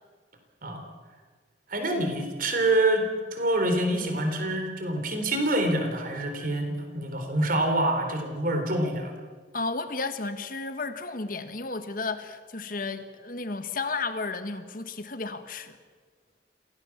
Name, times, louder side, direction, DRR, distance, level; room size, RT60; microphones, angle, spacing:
voice 1, 1.7-3.0 3.3-9.2, right 1 dB, 50° right, 5 dB, 3.8 m, -26 dB
voice 2, 9.5-15.8, left 3 dB, 50° left, 9 dB, 1.6 m, -33 dB
27.0 x 17.5 x 7.3 m, 1.5 s
head